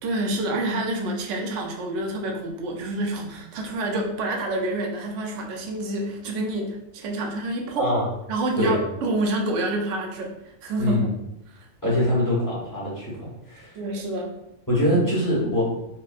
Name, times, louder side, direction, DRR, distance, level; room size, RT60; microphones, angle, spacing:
voice 1, 0.0-7.9 8.3-11.0 11.5-11.7 13.7-14.3, right 2 dB, 65° right, 2 dB, 0.9 m, -28 dB
voice 2, 11.8-13.7 14.7-15.6, left 1 dB, 15° left, -7 dB, 0.9 m, -23 dB
4.1 x 2.1 x 2.3 m, 0.86 s
omnidirectional pair, 1.5 m